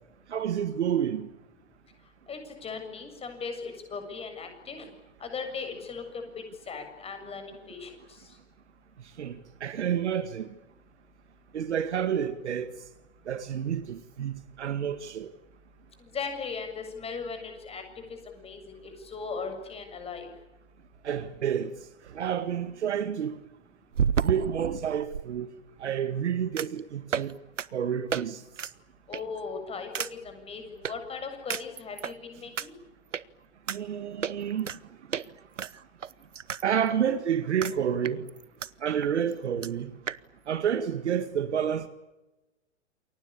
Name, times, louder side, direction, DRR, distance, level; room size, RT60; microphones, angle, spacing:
voice 1, 0.3-1.3 9.2-10.5 11.5-12.7 13.3-15.3 21.0-21.7 22.1-23.3 24.2-25.5 25.8-27.4 27.7-28.4 33.7-34.7 36.6-38.3 38.8-39.9 40.5-41.9, right 8 dB, 65° right, 2.0 m, -29 dB
voice 2, 2.3-4.9 5.2-8.3 16.0-17.8 18.1-20.3 29.1-32.7, left 5 dB, 15° left, 7.4 m, -38 dB
sound 1, 21.5-21.6 23.9-25.2 26.6-26.8 27.1-27.3 27.6-27.7 28.1-28.2 28.6-28.7 29.1-29.4 29.9-30.1 30.8-30.9 31.5-32.1 32.6-32.7 33.1-33.2 33.7-33.8 34.2-34.8 35.1-35.3 35.6-36.6 36.9-37.0 37.6-37.8 38.0-38.7 39.0-39.1 39.3-39.4 39.6-39.7 40.1-40.2, right 7 dB, 80° right, 1.1 m, -31 dB
29.0 x 23.5 x 8.7 m
hypercardioid pair, 120°, 36 cm